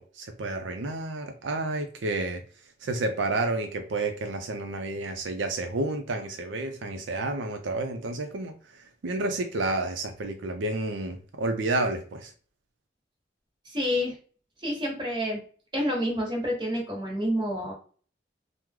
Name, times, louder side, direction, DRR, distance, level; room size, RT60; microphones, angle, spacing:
voice 1, 0.0-2.4 2.8-12.3, right 2 dB, 80° right, 5 dB, 0.5 m, -30 dB
voice 2, 13.6-14.2 14.6-15.4 15.7-17.7, equal, 25° right, -2 dB, 1.2 m, -28 dB
3.0 x 2.0 x 3.6 m, 0.41 s
head